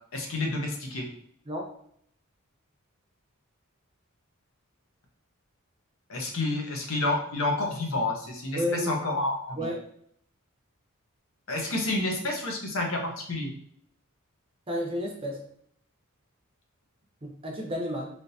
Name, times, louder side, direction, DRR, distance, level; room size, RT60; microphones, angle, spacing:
voice 1, 0.1-1.1 6.1-9.7 11.5-13.5, left 2 dB, 70° left, 1 dB, 0.7 m, -29 dB
voice 2, 8.6-9.0 9.6-9.8 14.7-15.4 17.2-18.1, left 1 dB, 25° right, 0 dB, 0.6 m, -31 dB
3.5 x 2.7 x 2.6 m, 0.65 s
head